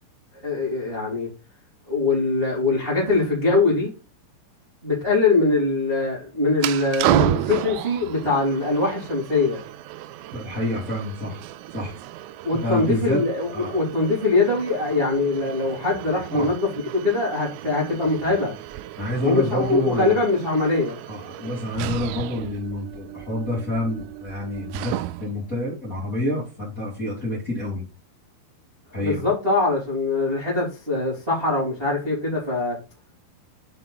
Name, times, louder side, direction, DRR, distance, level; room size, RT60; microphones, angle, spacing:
voice 1, 0.4-1.3 1.9-3.9 4.8-9.6 12.4-18.5 19.2-20.9 29.0-32.8, left 3 dB, 15° right, 1.9 m, -22 dB
sound 1, 6.6-25.5, right 15 dB, 85° right, 3.1 m, -32 dB
voice 2, 10.3-11.4 11.7-11.9 12.6-13.2 13.5-13.8 16.3-16.5 19.0-20.1 21.1-27.8 28.9-29.2, left 1 dB, 20° left, 2.4 m, -28 dB
7.1 x 5.7 x 3.9 m
omnidirectional pair, 5.8 m